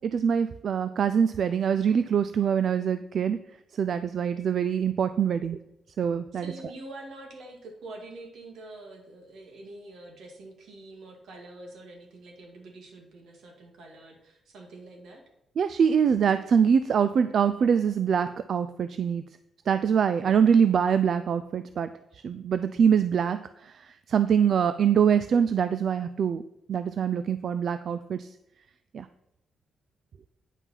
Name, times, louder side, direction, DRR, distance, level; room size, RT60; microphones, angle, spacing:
voice 1, 0.0-3.4 3.7-5.6 6.0-6.5 15.6-19.2 19.7-26.4 26.7-28.3 28.9-29.1, right 7 dB, 55° right, 12 dB, 0.4 m, -24 dB
voice 2, 6.3-15.2, right 2 dB, 80° right, 2 dB, 2.3 m, -45 dB
9.2 x 5.8 x 5.6 m, 0.85 s
cardioid pair, 140°, 0 cm